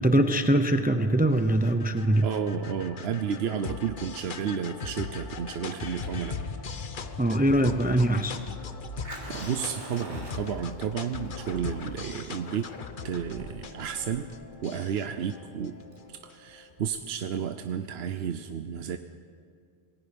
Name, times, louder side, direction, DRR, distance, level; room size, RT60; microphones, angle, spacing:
voice 1, 0.0-2.3 7.2-8.4, right 1 dB, 10° right, 8 dB, 0.7 m, -23 dB
sound 1, 1.0-16.5, left 4 dB, 50° left, 1.1 m, -40 dB
voice 2, 2.2-6.4 9.3-12.7 13.0-14.3 14.6-15.8 16.1-19.0, right 7 dB, 75° right, 9 dB, 1.0 m, -32 dB
Fire, 6.0-17.0, right 1 dB, 45° right, 3.3 m, -47 dB
27.0 x 19.5 x 5.2 m, 2.3 s
omnidirectional pair, 1.1 m